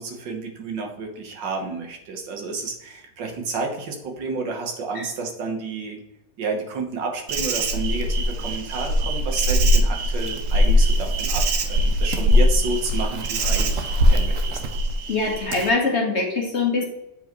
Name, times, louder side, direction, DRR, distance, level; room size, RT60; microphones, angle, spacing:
voice 1, 0.0-6.0 6.4-14.6, right 4 dB, 85° right, 2 dB, 1.8 m, -31 dB
Insect, 7.3-15.7, equal, 60° right, 0.9 m, -21 dB
voice 2, 15.1-16.8, left 3 dB, 40° left, 0 dB, 1.3 m, -23 dB
7.8 x 4.9 x 3.0 m, 0.90 s
omnidirectional pair, 1.9 m